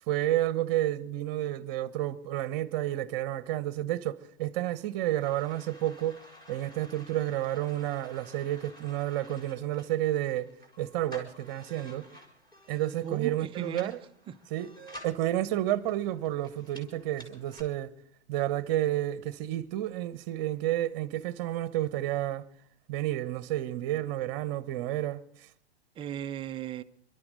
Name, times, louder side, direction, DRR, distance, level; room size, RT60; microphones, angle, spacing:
voice 1, 0.1-6.2 6.5-10.5 10.8-12.1 12.7-14.0 14.5-14.7 15.0-17.9 18.3-22.4 22.9-25.2, right 13 dB, 40° right, 1.1 m, -30 dB
sound 1, 4.6-17.6, equal, 15° left, 4.3 m, -52 dB
voice 2, 13.0-14.0 14.3-14.4 26.0-26.8, right 10 dB, 15° right, 0.6 m, -36 dB
29.0 x 12.5 x 3.9 m
figure-of-eight pair, 100°, 33 cm